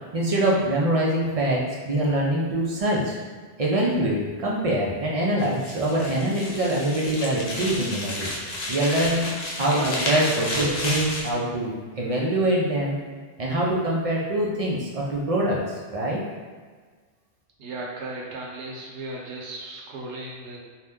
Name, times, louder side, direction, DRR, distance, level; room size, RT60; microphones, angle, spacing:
voice 1, 0.1-3.1 3.6-8.3 8.7-9.3 9.6-13.0 13.4-16.2, right 1 dB, 55° right, -4 dB, 0.4 m, -24 dB
sound 1, 5.4-11.3, left 1 dB, 50° left, 0.5 m, -31 dB
voice 2, 9.6-11.1 17.6-20.6, right 1 dB, 80° right, -3 dB, 1.0 m, -35 dB
2.7 x 2.1 x 3.4 m, 1.5 s
omnidirectional pair, 1.2 m